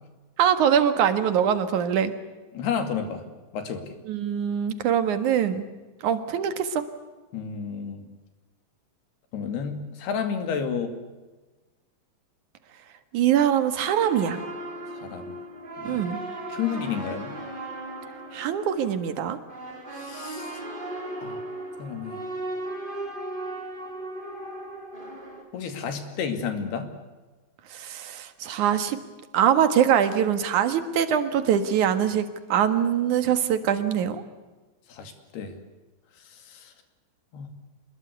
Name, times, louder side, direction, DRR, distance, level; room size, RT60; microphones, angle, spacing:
voice 1, 0.4-2.1 4.1-5.6 6.0-6.8 13.1-14.4 15.8-16.2 18.3-19.4 27.7-29.0 29.3-34.2, right 9 dB, 60° right, 9 dB, 2.7 m, -23 dB
voice 2, 2.5-3.2 3.5-3.9 7.3-8.1 9.3-10.9 14.9-15.4 15.8-16.1 16.5-17.4 20.0-20.6 21.2-21.4 21.8-22.2 25.5-26.9 34.9-35.6 36.2-36.7 37.3-37.5, left 6 dB, 85° left, 7 dB, 4.5 m, -31 dB
sound 1, 13.8-25.4, right 1 dB, 15° right, 4.2 m, -37 dB
26.5 x 21.0 x 8.2 m, 1.2 s
omnidirectional pair, 4.5 m